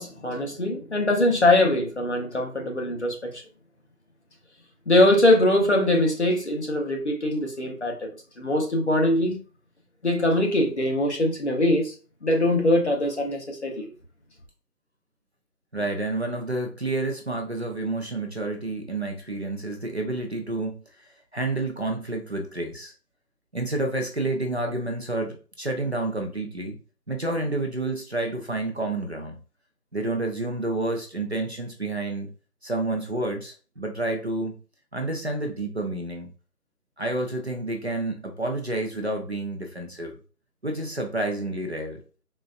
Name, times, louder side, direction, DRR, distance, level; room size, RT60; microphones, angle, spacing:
voice 1, 0.0-3.4 4.9-9.4 10.0-11.9 12.2-13.9, left 1 dB, 45° left, 0.8 m, -22 dB
voice 2, 15.7-22.9 23.5-26.8 27.1-29.4 29.9-32.3 32.6-34.6 34.9-36.3 37.0-40.2 40.6-42.0, right 2 dB, 45° right, 0.5 m, -29 dB
4.0 x 2.3 x 2.4 m
figure-of-eight pair, 170°, 47 cm